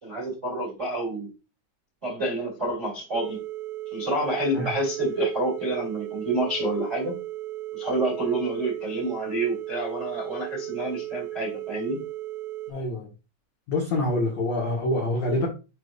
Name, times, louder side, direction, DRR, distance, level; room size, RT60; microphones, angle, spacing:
voice 1, 0.0-1.3 2.0-3.4 3.9-7.1 7.7-12.0, right 2 dB, 35° right, -3 dB, 1.0 m, -28 dB
sound 1, 3.1-12.7, right 16 dB, 75° right, 3.3 m, -36 dB
voice 2, 12.7-13.1 13.7-15.5, left 1 dB, 75° left, -3 dB, 1.5 m, -26 dB
7.5 x 4.9 x 2.6 m, 0.29 s
omnidirectional pair, 5.9 m